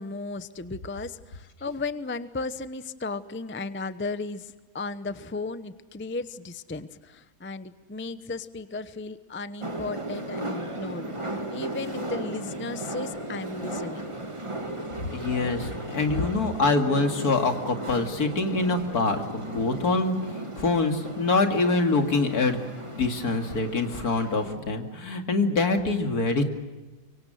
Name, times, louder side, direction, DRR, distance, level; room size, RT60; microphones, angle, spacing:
voice 1, 0.0-11.1 11.5-14.1, left 3 dB, 10° left, 13 dB, 0.6 m, -35 dB
sound 1, 9.6-24.6, right 1 dB, 20° right, 2.2 m, -36 dB
voice 2, 15.1-22.6 22.9-26.4, left 3 dB, 75° left, 5 dB, 2.8 m, -25 dB
24.5 x 24.0 x 7.7 m, 1.2 s
omnidirectional pair, 1.6 m